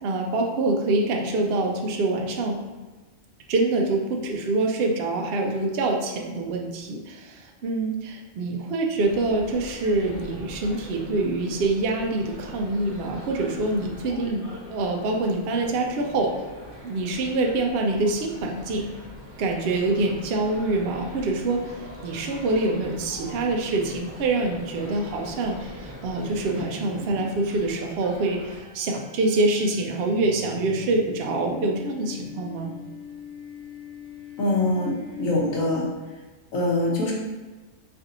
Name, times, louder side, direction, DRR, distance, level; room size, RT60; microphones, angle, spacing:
voice 1, 0.0-2.6 3.5-16.3 16.8-18.9 19.4-32.7, right 2 dB, 60° right, 1 dB, 0.7 m, -25 dB
sound 1, 9.0-28.6, equal, 25° right, 0.5 m, -42 dB
sound 2, 24.8-35.8, left 6 dB, 85° right, 1.2 m, -45 dB
voice 2, 34.4-35.9 36.5-37.1, left 2 dB, 90° left, -3 dB, 1.3 m, -24 dB
3.3 x 2.6 x 3.9 m, 1.3 s
omnidirectional pair, 1.4 m